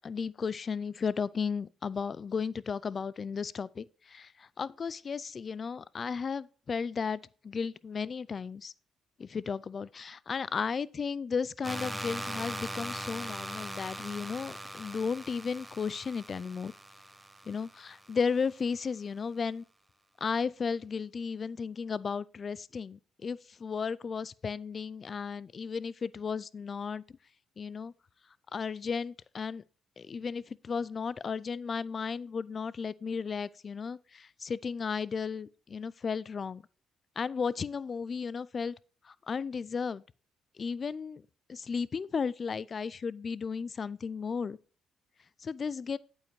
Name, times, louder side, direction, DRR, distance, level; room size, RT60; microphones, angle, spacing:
voice 1, 0.0-8.7 9.2-16.7 17.5-19.6 20.2-27.2 27.6-27.9 28.5-29.6 30.0-36.6 37.2-38.7 39.0-40.0 40.6-41.2 41.5-44.6 45.4-46.0, left 5 dB, 40° left, 0.4 m, -34 dB
sound 1, 11.6-18.4, right 1 dB, 10° right, 0.8 m, -41 dB
8.8 x 8.1 x 3.1 m
cardioid pair, 90°, 0 cm